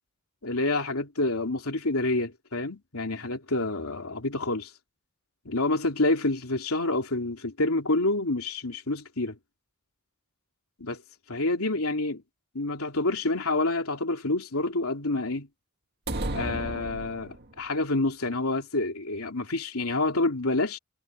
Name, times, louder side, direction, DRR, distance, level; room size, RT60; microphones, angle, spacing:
voice 1, 0.4-4.7 5.4-9.4 10.8-11.0 11.3-12.2 12.5-15.5 16.3-20.8, left 2 dB, 80° left, 2.9 m, -28 dB
sound 1, 16.1-17.7, right 1 dB, 50° right, 2.1 m, -33 dB
head